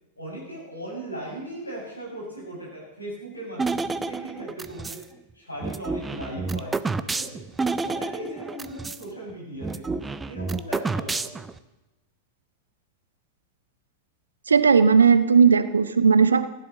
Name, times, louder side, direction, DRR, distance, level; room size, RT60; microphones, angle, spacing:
voice 1, 0.2-5.0 5.3-6.8 7.0-11.4, right 1 dB, 85° left, -3 dB, 7.0 m, -38 dB
sound 1, 3.6-5.0 5.6-9.0 9.3-9.4 9.6-11.6, right 4 dB, 15° right, 0.6 m, -29 dB
voice 2, 14.5-16.5, right 5 dB, 75° right, 12 dB, 0.9 m, -17 dB
15.5 x 10.5 x 6.5 m, 1.0 s
figure-of-eight pair, 90°, 0 cm